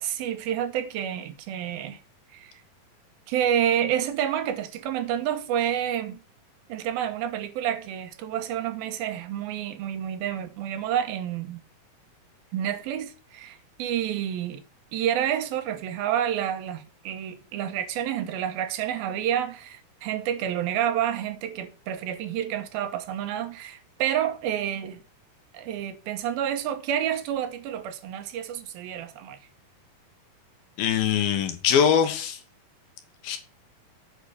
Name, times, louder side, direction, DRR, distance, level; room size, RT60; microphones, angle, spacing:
voice 1, 0.0-2.0 2.3-2.5 3.3-6.2 6.7-11.6 12.5-14.6 14.9-25.0 25.5-29.4, right 10 dB, 85° right, 2.8 m, -29 dB
voice 2, 30.8-32.4 33.2-33.4, left 8 dB, 80° left, 3.0 m, -22 dB
8.2 x 5.2 x 6.5 m
omnidirectional pair, 4.2 m